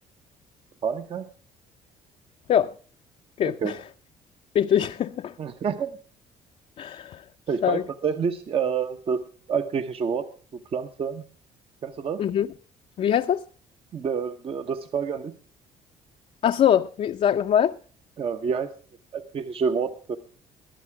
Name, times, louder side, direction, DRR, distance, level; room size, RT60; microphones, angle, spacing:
voice 1, 0.8-1.3 3.4-3.7 5.4-6.0 7.5-9.2 9.5-10.3 10.7-11.2 11.8-12.2 13.9-15.3 18.2-18.7 19.1-20.2, right 6 dB, 40° right, 0.8 m, -28 dB
voice 2, 3.4-3.8 4.5-5.3 6.8-7.2 7.6-7.8 12.2-12.5 13.0-13.4 16.4-17.8, left 9 dB, 50° left, 0.5 m, -22 dB
21.5 x 7.5 x 4.7 m
cardioid pair, 95°, 14 cm